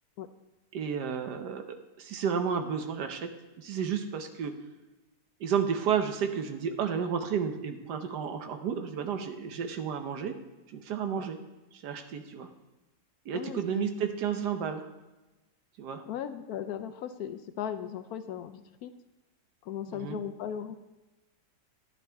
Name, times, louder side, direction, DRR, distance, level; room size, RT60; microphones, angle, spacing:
voice 1, 0.7-3.3 3.6-4.5 5.4-10.3 10.7-11.4 11.7-12.5 13.3-14.8 15.8-16.0 19.9-20.2, right 7 dB, 75° right, 7 dB, 1.4 m, -32 dB
voice 2, 13.3-13.9 16.1-18.9 19.6-20.8, left 9 dB, 70° left, 10 dB, 1.0 m, -37 dB
11.0 x 11.0 x 3.4 m, 1.1 s
omnidirectional pair, 1.9 m